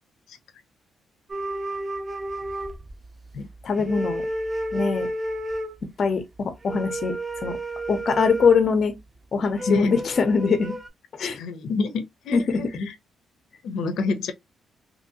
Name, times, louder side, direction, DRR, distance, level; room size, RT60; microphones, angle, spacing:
sound 1, 1.3-3.4 3.7-5.8 6.6-8.6 9.6-10.9, right 1 dB, 25° right, 0.6 m, -31 dB
voice 1, 3.6-4.2 4.7-5.1 6.0-7.6 7.9-8.9 9.3-10.8 11.1-11.4 12.3-12.9, left 5 dB, 45° left, 0.6 m, -23 dB
voice 2, 11.2-13.0 13.6-14.3, left 3 dB, 85° left, 0.6 m, -27 dB
2.7 x 2.7 x 2.6 m
cardioid pair, 130°, 0 cm